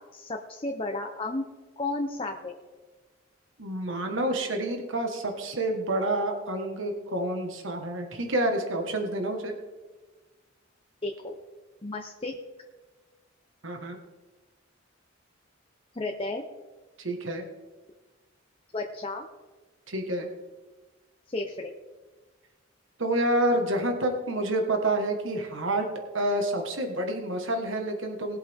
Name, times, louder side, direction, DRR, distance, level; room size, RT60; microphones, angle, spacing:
voice 1, 0.0-1.4 1.8-2.5 11.0-11.4 11.8-12.3 15.9-16.4 18.7-19.3 21.3-21.7, left 2 dB, 30° left, 2 dB, 1.0 m, -33 dB
voice 2, 3.6-9.5 13.6-14.0 17.0-17.4 19.9-20.3 23.0-25.9 26.1-28.4, right 1 dB, 70° right, 3 dB, 1.6 m, -28 dB
20.0 x 8.0 x 3.7 m, 1.3 s
head